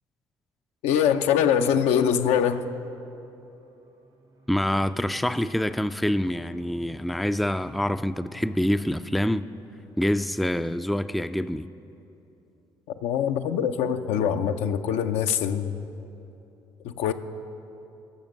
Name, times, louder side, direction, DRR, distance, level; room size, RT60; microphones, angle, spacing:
voice 1, 0.8-2.7 13.0-15.9 16.8-17.1, left 8 dB, 75° left, 0.5 m, -23 dB
sound 1, 3.1-9.0, right 1 dB, 85° right, 1.7 m, -52 dB
voice 2, 4.5-9.5 10.0-11.7, left 1 dB, ahead, 0.3 m, -26 dB
12.5 x 7.0 x 6.4 m
hypercardioid pair, 50°, 11 cm